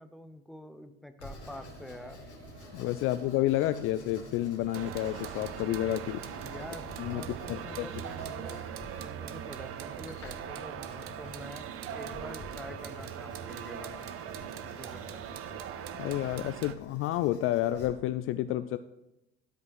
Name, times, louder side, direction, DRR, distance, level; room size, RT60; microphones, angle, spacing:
voice 1, 0.0-2.2 6.4-11.6 11.9-14.1 14.8-15.3, left 1 dB, ahead, 9 dB, 0.7 m, -47 dB
Writing, 1.2-17.9, left 2 dB, 85° left, 2.3 m, -51 dB
sound 1, 1.4-7.7, right 3 dB, 85° right, 1.4 m, -52 dB
voice 2, 2.7-6.2 7.0-7.9 16.0-18.8, left 14 dB, 40° left, 12 dB, 0.4 m, -30 dB
sound 2, 4.7-16.8, right 9 dB, 40° right, 0.7 m, -40 dB
12.5 x 5.3 x 4.7 m, 0.90 s
figure-of-eight pair, 65°, 33 cm